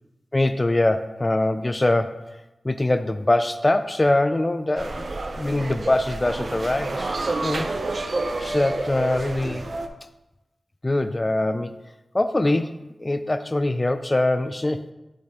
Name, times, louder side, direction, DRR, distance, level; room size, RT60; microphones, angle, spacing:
voice 1, 0.3-2.2 2.6-5.1 5.4-7.7 8.4-9.7 10.8-11.8 12.1-14.9, left 1 dB, 30° left, 10 dB, 0.3 m, -23 dB
sound 1, 4.8-9.9, right 2 dB, 60° right, 0.5 m, -29 dB
7.5 x 4.4 x 3.5 m, 0.97 s
cardioid pair, 45°, 0 cm